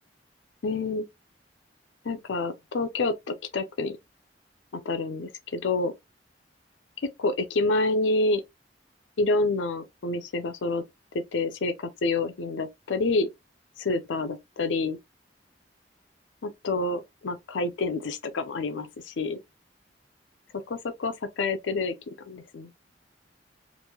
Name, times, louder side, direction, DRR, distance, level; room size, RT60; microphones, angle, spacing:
voice 1, 0.6-1.0 2.0-4.0 4.7-5.9 7.2-8.4 9.2-10.8 11.3-13.3 13.8-15.0 16.4-19.4 20.7-22.7, left 3 dB, 90° left, 0.5 m, -28 dB
3.0 x 2.5 x 2.2 m
head